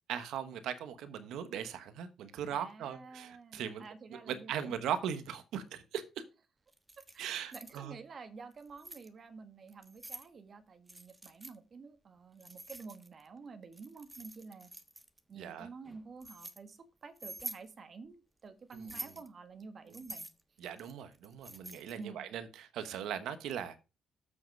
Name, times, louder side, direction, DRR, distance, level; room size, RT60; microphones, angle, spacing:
voice 1, 0.1-3.8 4.1-6.0 7.2-7.9 15.4-15.7 18.7-19.0 20.6-23.8, right 9 dB, 85° right, 1.1 m, -39 dB
voice 2, 2.5-4.8 7.1-14.7 15.3-20.3 22.0-22.3, right 4 dB, 45° right, 1.6 m, -50 dB
Keys jangling, 6.7-7.8 8.5-9.1 9.7-10.3 10.9-11.6 12.4-13.3 13.7-15.2 15.8-16.6 17.2-17.7 18.7-19.3 19.9-22.0, right 2 dB, 15° right, 1.2 m, -47 dB
7.8 x 6.4 x 5.3 m
cardioid pair, 90°, 0 cm